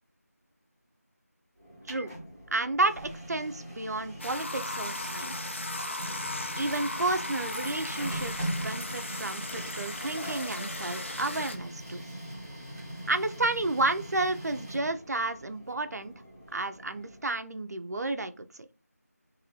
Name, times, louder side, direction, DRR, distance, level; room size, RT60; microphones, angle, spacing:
Printer, 1.6-17.4, right 1 dB, 5° right, 0.7 m, -41 dB
voice 1, 2.5-5.6 6.6-12.0 13.1-16.1 16.5-18.7, right 2 dB, 75° right, 10 dB, 0.4 m, -31 dB
sound 1, 4.2-11.6, left 2 dB, 45° left, 0.4 m, -37 dB
2.6 x 2.6 x 2.8 m, 0.35 s
figure-of-eight pair, 175°, 9 cm